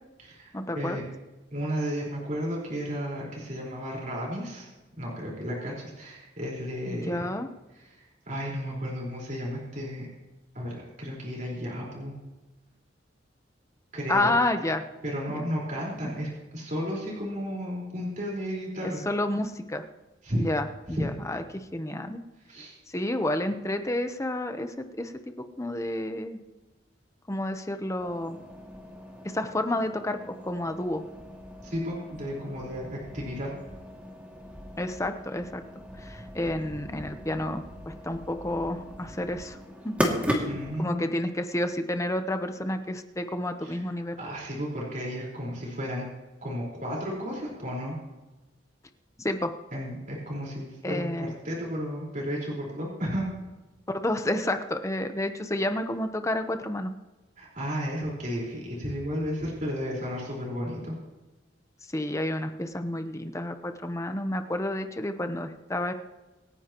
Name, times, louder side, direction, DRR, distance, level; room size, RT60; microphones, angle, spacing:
voice 1, 0.5-1.0 6.9-7.5 14.1-14.8 15.3-15.4 16.0-16.2 18.8-19.8 20.3-22.2 22.9-25.1 25.4-26.4 27.3-28.4 29.3-31.0 34.8-35.6 36.0-39.6 39.8-39.9 40.4-40.5 40.8-44.2 49.2-49.5 50.8-51.3 53.9-56.9 61.9-65.9, left 1 dB, 15° left, 7 dB, 0.8 m, -30 dB
voice 2, 1.5-4.7 5.0-7.3 7.7-10.1 10.5-12.1 13.9-14.3 15.0-19.0 20.2-20.5 20.9-21.1 22.5-22.7 31.6-33.5 40.5-41.1 43.6-43.8 44.2-46.1 46.4-48.0 49.7-53.3 57.4-60.9, equal, 45° right, -4 dB, 4.5 m, -33 dB
sound 1, 28.0-40.8, equal, 5° right, 2.3 m, -37 dB
26.0 x 10.0 x 3.0 m, 1.1 s
head